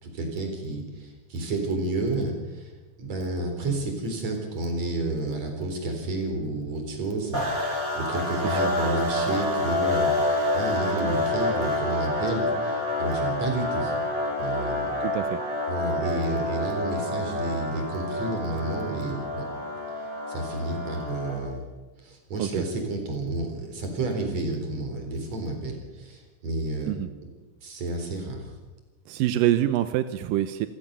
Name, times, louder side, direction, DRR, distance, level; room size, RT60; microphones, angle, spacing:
voice 1, 0.0-2.7 3.0-14.0 14.4-15.1 15.7-19.5 20.3-21.6 22.0-26.9 27.6-28.5, right 2 dB, 45° right, 4 dB, 5.0 m, -30 dB
sound 1, 7.3-21.5, left 1 dB, 20° right, 5.6 m, -28 dB
voice 2, 15.0-15.4 22.4-22.6 26.9-27.1 29.1-30.7, right 13 dB, 75° right, 11 dB, 2.1 m, -25 dB
28.0 x 15.0 x 6.9 m, 1.2 s
omnidirectional pair, 4.6 m